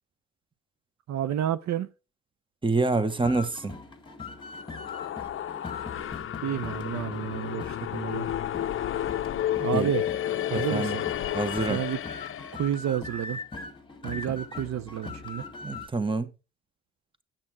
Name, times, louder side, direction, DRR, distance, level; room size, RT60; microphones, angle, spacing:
voice 1, 1.1-1.9 6.4-8.3 9.6-10.1 10.5-11.1 11.7-12.0 12.5-13.4 14.0-15.4, right 10 dB, 65° right, 0.7 m, -30 dB
voice 2, 2.6-3.8 9.7-9.9 10.5-10.9 11.3-11.8 15.6-16.3, right 3 dB, 15° right, 1.1 m, -27 dB
sound 1, 2.9-15.9, left 3 dB, 15° left, 2.0 m, -42 dB
sound 2, 4.4-12.8, left 11 dB, 45° left, 0.6 m, -32 dB
8.7 x 7.4 x 4.6 m
cardioid pair, 90°, 30 cm